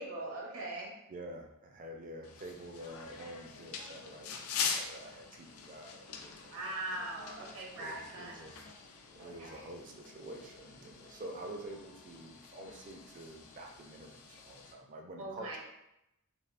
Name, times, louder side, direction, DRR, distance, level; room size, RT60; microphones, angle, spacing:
voice 1, 0.0-0.9 6.5-8.4 9.2-9.6 15.2-15.6, right 2 dB, 65° right, -1 dB, 0.7 m, -41 dB
voice 2, 1.1-6.6 7.8-8.6 9.1-15.6, right 1 dB, 35° right, 2 dB, 0.4 m, -48 dB
sound 1, 2.2-14.7, left 6 dB, 75° left, 0.4 m, -44 dB
3.5 x 2.4 x 2.4 m, 0.88 s
head